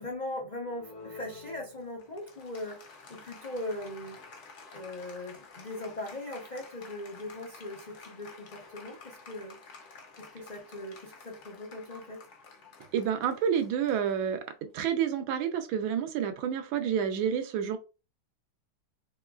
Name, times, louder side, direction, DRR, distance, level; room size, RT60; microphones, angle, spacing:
voice 1, 0.0-4.2 4.7-9.6 10.2-12.2, left 1 dB, 75° left, -2 dB, 0.4 m, -40 dB
Applause, 0.6-14.6, left 4 dB, 60° left, 0.7 m, -51 dB
voice 2, 12.9-14.4 14.7-17.8, right 8 dB, 80° right, 8 dB, 1.4 m, -29 dB
4.3 x 3.0 x 2.3 m, 0.31 s
omnidirectional pair, 2.2 m